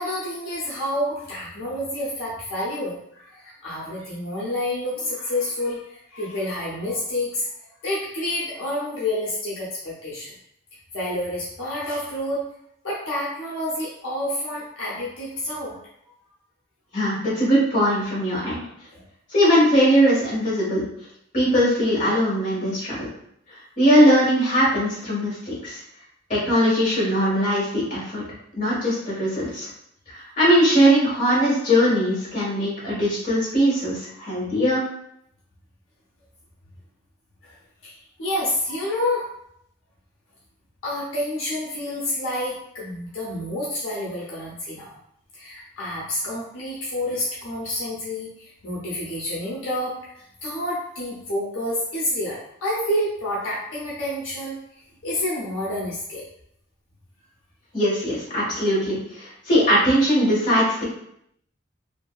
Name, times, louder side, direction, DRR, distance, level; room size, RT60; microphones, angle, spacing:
voice 1, 0.0-7.5 7.8-10.3 10.9-12.5 12.8-15.8 18.9-19.0 37.4-37.5 37.8-39.3 40.8-45.0 45.3-54.6 55.0-56.2, left 1 dB, 80° left, -6 dB, 0.7 m, -29 dB
voice 2, 16.9-18.6 19.3-20.8 21.3-23.1 23.8-25.8 26.3-28.2 28.5-29.7 30.4-34.8 57.7-60.8, equal, 40° left, -7 dB, 1.3 m, -20 dB
2.7 x 2.6 x 2.3 m, 0.72 s
head